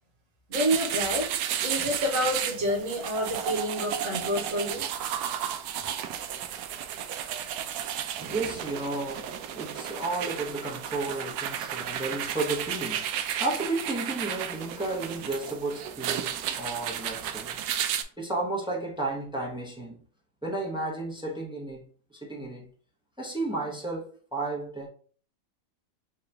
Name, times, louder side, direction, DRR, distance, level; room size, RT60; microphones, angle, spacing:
voice 1, 0.5-1.3 1.6-4.8, equal, 50° right, 1.4 m, -28 dB
sound 1, 0.5-18.0, right 9 dB, 70° right, 0.9 m, -33 dB
voice 2, 7.3-7.7 8.1-17.6 18.2-20.0 20.4-21.8 22.1-22.7 23.2-24.9, right 2 dB, 5° right, 0.4 m, -33 dB
4.8 x 2.9 x 3.4 m
omnidirectional pair, 2.0 m